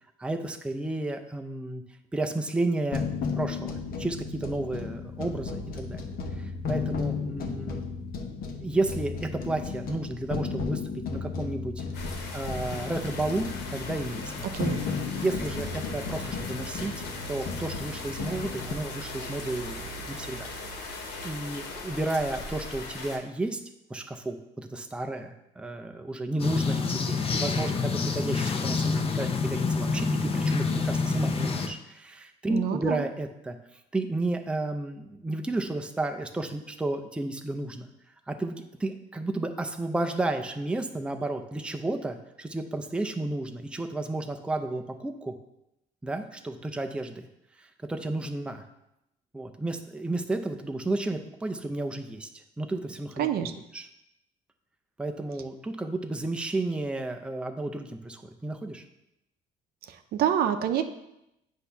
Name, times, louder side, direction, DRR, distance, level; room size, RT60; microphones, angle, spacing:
voice 1, 0.2-1.8 2.1-3.0 3.3-6.0 6.4-7.9 8.6-10.8 11.1-11.8 12.3-14.5 15.1-20.5 20.8-21.0 21.2-23.6 23.9-33.6 33.9-37.9 38.3-45.3 46.0-47.3 47.6-48.6 49.3-53.9 55.0-58.8, right 2 dB, 5° right, 6 dB, 0.5 m, -32 dB
sound 1, 2.9-18.7, left 5 dB, 60° left, 0.9 m, -34 dB
sound 2, 11.9-23.2, left 2 dB, 80° left, 1.2 m, -39 dB
sound 3, 26.4-31.7, left 4 dB, 35° left, 0.7 m, -27 dB
voice 2, 32.5-33.0 53.2-53.5 59.9-60.8, right 9 dB, 65° right, 8 dB, 0.6 m, -27 dB
8.0 x 2.7 x 5.6 m, 0.86 s
cardioid pair, 110°, 17 cm